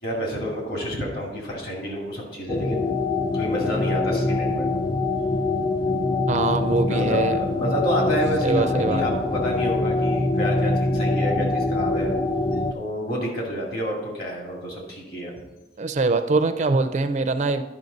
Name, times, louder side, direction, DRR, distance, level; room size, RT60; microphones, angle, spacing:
voice 1, 0.0-2.9 3.3-4.8 6.9-12.2 12.7-15.4, equal, 60° left, 0 dB, 2.2 m, -29 dB
sound 1, 2.5-12.7, left 2 dB, 25° left, 0.4 m, -24 dB
voice 2, 6.3-7.4 8.4-9.0 15.8-17.6, right 3 dB, 40° right, 10 dB, 0.4 m, -23 dB
11.0 x 5.5 x 4.0 m, 1.1 s
head